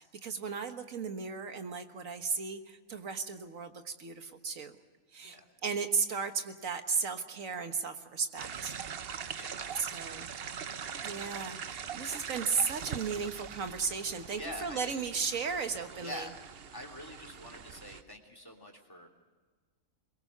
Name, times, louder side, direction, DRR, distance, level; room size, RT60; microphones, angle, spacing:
voice 1, 0.0-4.8 5.1-5.4 5.6-8.7 9.8-10.3 11.0-16.3, right 5 dB, 80° right, 7 dB, 1.9 m, -35 dB
sound 1, 8.4-18.0, right 7 dB, 50° right, 0.9 m, -42 dB
voice 2, 9.3-10.8 14.3-15.0 16.0-16.3 16.7-19.1, left 1 dB, 15° left, 5 dB, 3.1 m, -46 dB
22.5 x 22.0 x 6.7 m, 1.4 s
omnidirectional pair, 1.4 m